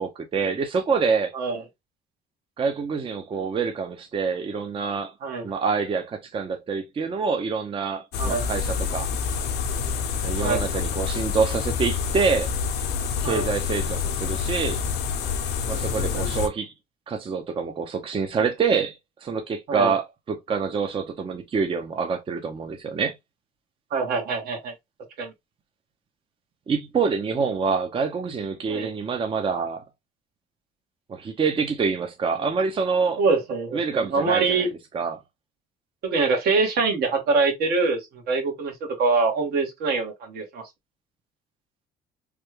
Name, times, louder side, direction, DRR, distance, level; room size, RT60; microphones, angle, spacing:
voice 1, 0.0-1.3 2.6-5.1 5.4-9.1 10.2-12.5 13.2-14.8 15.7-16.7 17.1-23.1 26.7-29.8 31.1-33.2 33.7-34.7 34.9-35.2, right 5 dB, 30° right, 0.6 m, -26 dB
sound 1, 8.1-16.5, left 6 dB, 80° left, 0.7 m, -27 dB
voice 2, 15.7-16.3 19.7-19.9 23.9-24.7 25.2-25.3 28.7-28.9 33.2-34.7 36.0-40.7, right 4 dB, 70° right, 1.3 m, -24 dB
3.2 x 2.3 x 3.2 m
cardioid pair, 110°, 17 cm